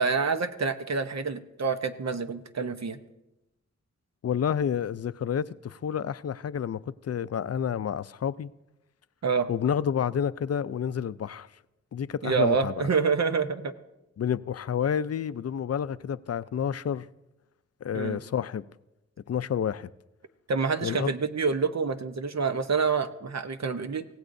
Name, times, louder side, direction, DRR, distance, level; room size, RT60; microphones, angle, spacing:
voice 1, 0.0-3.0 9.2-9.5 12.2-13.7 17.9-18.2 20.5-24.1, right 5 dB, 60° right, 0.8 m, -27 dB
voice 2, 4.2-8.5 9.5-11.5 11.9-12.8 14.2-17.1 17.8-18.6 19.3-19.9 20.8-21.1, left 8 dB, 55° left, 0.4 m, -29 dB
24.0 x 16.5 x 2.6 m
wide cardioid pair, 90°, 30 cm